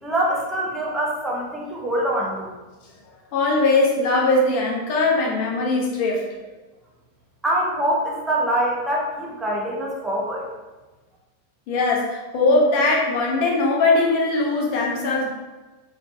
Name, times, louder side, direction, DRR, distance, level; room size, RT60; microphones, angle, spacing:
voice 1, 0.0-2.5 7.4-10.5, right 1 dB, 10° right, -4 dB, 0.9 m, -24 dB
voice 2, 3.3-6.2 11.7-15.3, left 2 dB, 45° left, -2 dB, 0.9 m, -20 dB
3.4 x 3.0 x 2.7 m, 1.2 s
figure-of-eight pair, 90°, 0 cm